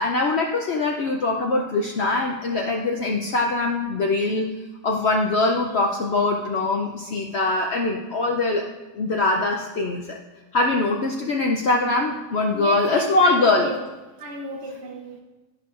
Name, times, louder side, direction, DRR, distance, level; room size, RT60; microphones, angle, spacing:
voice 1, 0.0-4.5 4.8-8.7 9.0-10.2 10.5-13.7, left 2 dB, 60° left, 1 dB, 0.7 m, -22 dB
voice 2, 12.5-13.9 14.2-15.2, right 1 dB, 50° right, 2 dB, 0.9 m, -33 dB
12.5 x 5.6 x 2.5 m, 1.2 s
omnidirectional pair, 1.6 m